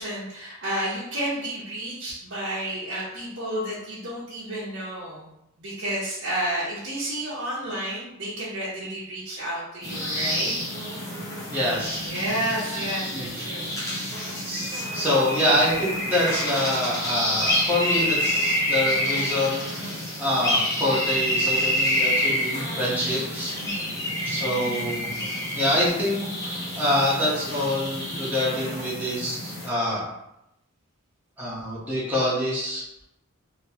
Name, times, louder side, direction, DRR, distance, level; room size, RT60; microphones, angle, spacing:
voice 1, 0.0-5.3 5.6-10.5 12.0-13.7 14.0-14.1 23.6-24.1, right 1 dB, 65° right, -10 dB, 1.0 m, -31 dB
sound 1, 9.8-29.7, left 1 dB, 15° left, 0.8 m, -28 dB
voice 2, 11.5-12.0 12.6-13.3 14.4-23.5 24.2-25.2 25.5-26.2 26.7-30.1 31.4-32.8, left 1 dB, 10° right, -9 dB, 1.1 m, -26 dB
3.2 x 2.9 x 2.9 m, 0.84 s
head